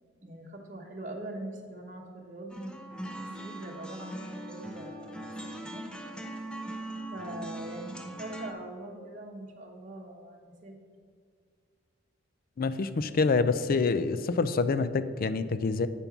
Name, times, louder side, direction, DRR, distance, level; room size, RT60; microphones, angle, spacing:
voice 1, 0.2-2.6 3.1-5.1 5.4-5.9 7.1-10.7, right 1 dB, 40° right, -2 dB, 1.0 m, -42 dB
sound 1, 2.5-8.5, right 1 dB, 5° left, 0.7 m, -40 dB
voice 2, 12.6-15.9, left 4 dB, 45° left, 13 dB, 0.4 m, -26 dB
8.4 x 5.3 x 5.9 m, 2.1 s
head